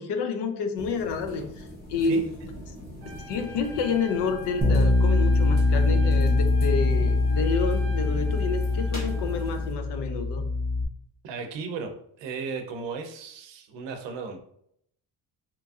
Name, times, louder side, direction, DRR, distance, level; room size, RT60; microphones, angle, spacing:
voice 1, 0.0-2.3 3.1-10.5, left 4 dB, 65° left, 7 dB, 0.5 m, -29 dB
sound 1, 0.7-9.7, equal, 20° left, 1.0 m, -42 dB
Trumpet, 3.0-9.7, left 2 dB, 30° right, 0.8 m, -44 dB
Bass guitar, 4.6-10.8, left 2 dB, 15° right, 0.4 m, -23 dB
voice 2, 11.2-11.9 12.2-14.4, right 5 dB, 70° right, 5 dB, 0.6 m, -35 dB
2.9 x 2.5 x 2.3 m, 0.70 s
cardioid pair, 160°, 45 cm